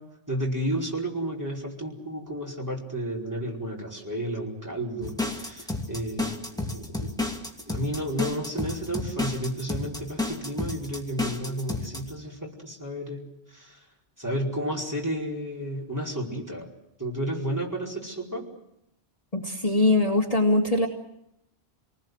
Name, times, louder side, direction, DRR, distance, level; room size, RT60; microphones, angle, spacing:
voice 1, 0.0-7.2 7.6-13.8 14.2-16.7 17.0-18.5, right 1 dB, 15° right, -2 dB, 4.8 m, -32 dB
sound 1, 5.0-12.1, left 2 dB, 5° left, 2.5 m, -31 dB
voice 2, 19.3-20.9, left 2 dB, 35° left, 1 dB, 2.2 m, -22 dB
28.0 x 19.5 x 7.9 m, 0.82 s
omnidirectional pair, 1.1 m